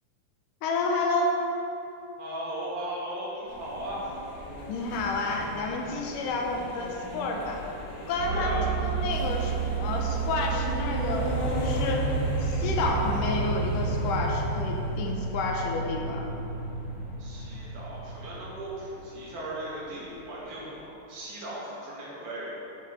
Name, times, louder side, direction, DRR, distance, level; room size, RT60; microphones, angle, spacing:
voice 1, 0.6-1.4 4.7-7.6 8.1-12.1 12.4-16.2, left 2 dB, 80° left, 1 dB, 2.3 m, -30 dB
voice 2, 2.2-4.1 8.3-8.7 17.2-22.5, right 1 dB, 70° right, -6 dB, 3.2 m, -37 dB
sound 1, 3.5-20.8, left 1 dB, 45° left, 1.2 m, -40 dB
sound 2, 8.2-19.6, right 4 dB, 65° left, 2.9 m, -31 dB
8.8 x 7.7 x 3.4 m, 2.9 s
omnidirectional pair, 3.8 m